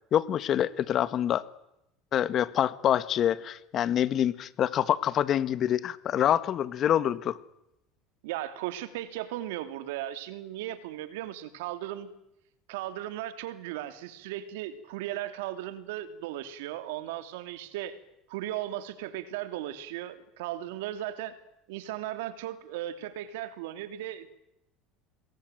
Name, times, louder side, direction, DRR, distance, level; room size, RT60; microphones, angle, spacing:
voice 1, 0.1-1.5 2.1-7.4, left 10 dB, 45° left, 15 dB, 1.7 m, -26 dB
voice 2, 8.2-12.1 12.7-18.0 18.3-21.4 21.7-24.4, right 13 dB, 85° right, 11 dB, 2.9 m, -36 dB
27.5 x 22.0 x 9.2 m, 0.84 s
supercardioid pair, 100°, 0 cm